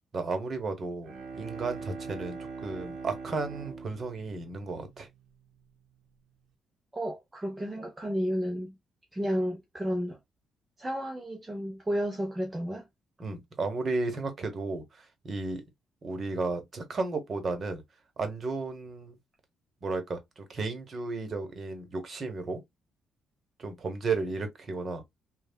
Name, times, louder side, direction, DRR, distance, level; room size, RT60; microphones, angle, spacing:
voice 1, 0.1-5.1 13.2-15.6 16.0-17.8 18.2-19.2 19.8-22.6 23.6-25.2, right 3 dB, 45° right, 1.1 m, -34 dB
Bowed string instrument, 1.0-5.6, right 4 dB, 70° right, 0.9 m, -42 dB
voice 2, 6.9-8.8 9.1-10.2 10.8-12.9, equal, 15° right, 0.7 m, -32 dB
3.3 x 2.3 x 2.2 m
cardioid pair, 90°, 0 cm